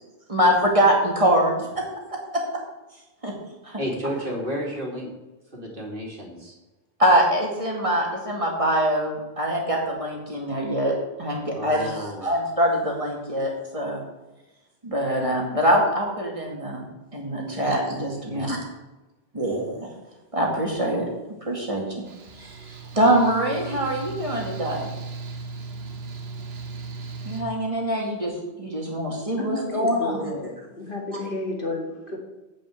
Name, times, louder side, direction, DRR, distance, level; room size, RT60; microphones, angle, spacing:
voice 1, 0.3-1.8 2.3-2.4 3.2-3.3 3.6-3.8 7.0-14.0 14.8-16.9 17.1-18.6 19.3-19.9 20.3-21.0 21.4-22.0 22.4-22.6 22.9-24.9 27.2-30.3, right 1 dB, 35° right, -1 dB, 2.4 m, -24 dB
voice 2, 3.8-5.1 5.5-6.5 11.5-12.3 17.5-17.6 18.2-18.5, equal, 60° right, -1 dB, 2.6 m, -32 dB
Mechanical fan, 22.1-27.4, right 4 dB, 80° right, 1.3 m, -37 dB
voice 3, 29.4-32.2, left 2 dB, 60° left, 0 dB, 2.1 m, -31 dB
8.9 x 5.5 x 8.1 m, 1.1 s
omnidirectional pair, 1.0 m